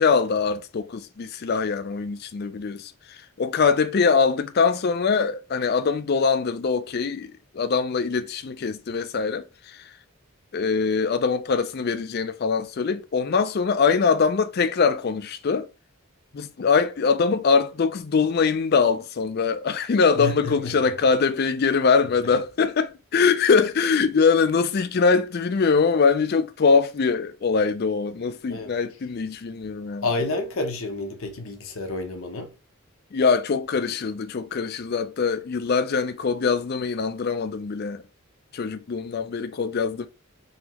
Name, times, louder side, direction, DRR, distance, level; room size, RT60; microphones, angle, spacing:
voice 1, 0.0-9.9 10.5-15.7 16.3-30.1 33.1-38.0 38.5-40.1, left 5 dB, 45° left, 0.4 m, -23 dB
voice 2, 20.2-20.8 28.5-28.7 30.0-32.5, left 2 dB, 70° left, 0.8 m, -29 dB
4.0 x 2.9 x 2.9 m
head